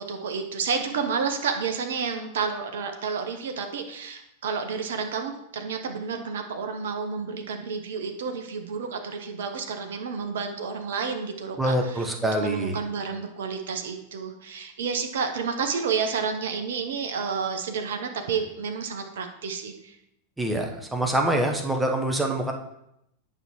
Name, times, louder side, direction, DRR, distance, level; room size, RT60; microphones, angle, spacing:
voice 1, 0.0-12.1 12.3-19.9, right 5 dB, 60° right, 5 dB, 0.8 m, -30 dB
voice 2, 11.6-12.8 20.4-22.5, right 1 dB, 5° right, 2 dB, 0.9 m, -25 dB
9.3 x 5.7 x 3.0 m, 0.80 s
figure-of-eight pair, 90°, 0 cm